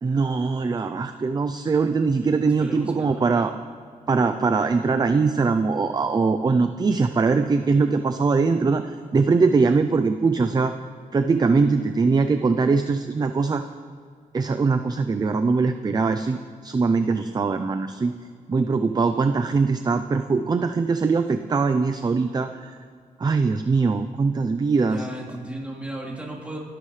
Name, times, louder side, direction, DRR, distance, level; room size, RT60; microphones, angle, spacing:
voice 1, 0.0-3.5 4.1-10.7 11.1-13.6 14.3-18.1 18.5-22.8 23.2-25.1, right 4 dB, 30° right, 9 dB, 0.5 m, -22 dB
voice 2, 2.4-3.3 24.9-26.6, right 1 dB, 10° right, -4 dB, 3.7 m, -35 dB
29.0 x 12.0 x 3.3 m, 2.1 s
wide cardioid pair, 125°, 14 cm